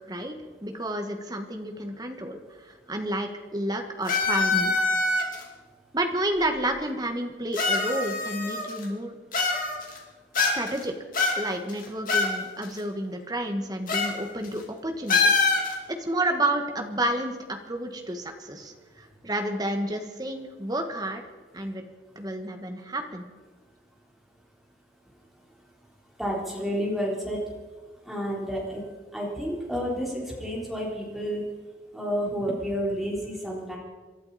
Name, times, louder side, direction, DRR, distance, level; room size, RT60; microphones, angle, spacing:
voice 1, 0.6-2.4 2.7-4.8 5.9-9.2 10.5-10.9 11.4-15.7 16.0-21.2 21.5-21.8 22.1-23.2, right 1 dB, 20° right, 5 dB, 1.5 m, -30 dB
sound 1, 4.1-5.4 6.4-6.5 7.5-8.8 9.3-10.0 10.4-10.8 11.1-12.3 12.6-12.7 13.9-14.2 14.4-14.6 15.1-15.7, left 3 dB, 50° left, 2.7 m, -24 dB
voice 2, 26.2-27.4 28.0-28.8 29.1-31.4 31.9-33.8, equal, ahead, -4 dB, 3.9 m, -30 dB
27.5 x 11.5 x 4.2 m, 1.4 s
head